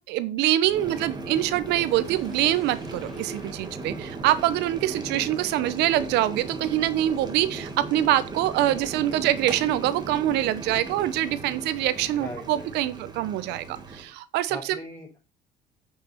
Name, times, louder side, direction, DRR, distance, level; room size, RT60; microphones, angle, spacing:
voice 1, 0.1-14.8, right 13 dB, 90° right, 15 dB, 0.9 m, -25 dB
Boiling, 0.6-14.1, right 3 dB, 25° right, 1.9 m, -37 dB
voice 2, 0.8-1.2 12.2-13.0 14.5-15.2, left 1 dB, 20° left, -4 dB, 5.2 m, -41 dB
sound 1, 1.6-5.6, left 1 dB, ahead, 4.8 m, -52 dB
8.5 x 5.9 x 5.8 m, 0.33 s
cardioid pair, 110°, 17 cm